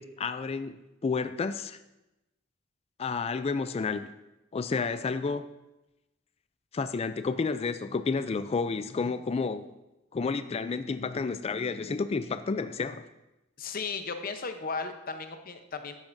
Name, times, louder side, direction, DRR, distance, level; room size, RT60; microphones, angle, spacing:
voice 1, 0.0-1.8 3.0-4.1 4.5-5.5 6.7-9.7 10.1-13.0, left 4 dB, 30° left, 11 dB, 0.3 m, -31 dB
voice 2, 13.6-15.9, left 4 dB, 45° left, 7 dB, 0.8 m, -35 dB
11.5 x 9.1 x 2.6 m, 0.96 s
head